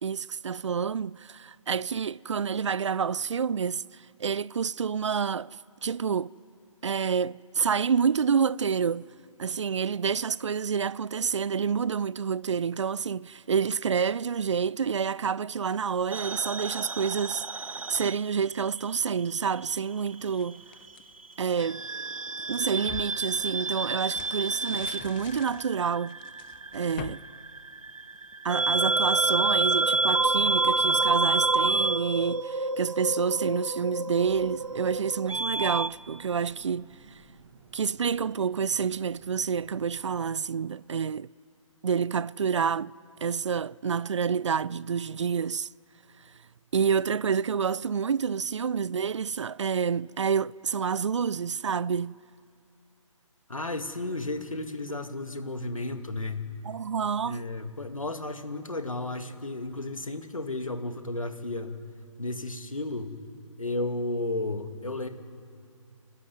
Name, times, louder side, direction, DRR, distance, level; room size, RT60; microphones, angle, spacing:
voice 1, 0.0-5.6 5.8-6.3 6.8-9.1 9.4-17.5 17.9-20.6 21.4-21.9 22.5-26.2 26.7-27.2 28.4-36.9 37.7-41.3 41.8-42.9 43.2-45.7 46.7-52.1 56.6-57.4, right 6 dB, 60° right, 0.4 m, -28 dB
sound 1, 16.1-19.0 19.2-20.4 21.6-35.9, right 3 dB, 85° right, 0.8 m, -28 dB
sound 2, 19.8-21.8 22.3-28.3, left 12 dB, 15° left, 0.4 m, -46 dB
sound 3, 34.2-40.3, right 4 dB, 45° right, 2.8 m, -53 dB
voice 2, 53.5-56.5 57.3-61.8 62.2-63.1 63.6-65.1, left 2 dB, 80° left, 2.2 m, -33 dB
30.0 x 12.5 x 9.5 m
figure-of-eight pair, 140°, 17 cm